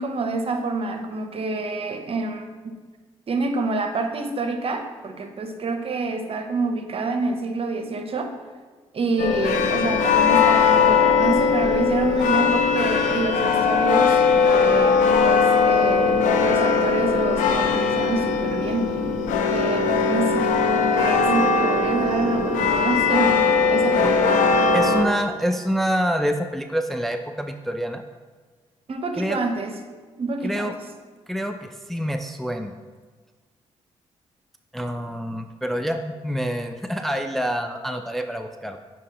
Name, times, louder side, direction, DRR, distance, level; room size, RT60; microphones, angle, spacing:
voice 1, 0.0-2.8 3.3-8.3 8.9-19.0 19.5-23.4 23.7-24.4 28.9-29.7 30.2-30.7, right 3 dB, 50° right, 6 dB, 0.7 m, -27 dB
sound 1, 9.2-25.1, left 5 dB, 85° left, 0.5 m, -20 dB
voice 2, 24.7-28.0 29.1-29.4 30.4-30.7 31.3-32.7 34.7-38.8, equal, ahead, 5 dB, 0.4 m, -26 dB
8.9 x 3.8 x 2.9 m, 1.4 s
supercardioid pair, 55°, 13 cm